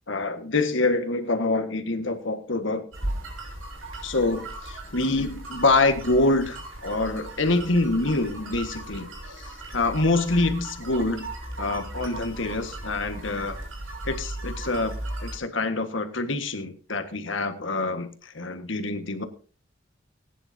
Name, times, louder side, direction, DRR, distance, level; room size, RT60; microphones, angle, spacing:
voice 1, 0.1-2.9 4.0-11.3 11.6-13.6 14.0-14.9 15.2-19.2, left 2 dB, 70° left, 7 dB, 1.7 m, -26 dB
sound 1, 2.9-15.4, right 1 dB, 90° right, 6.9 m, -37 dB
20.5 x 10.0 x 2.8 m, 0.38 s
head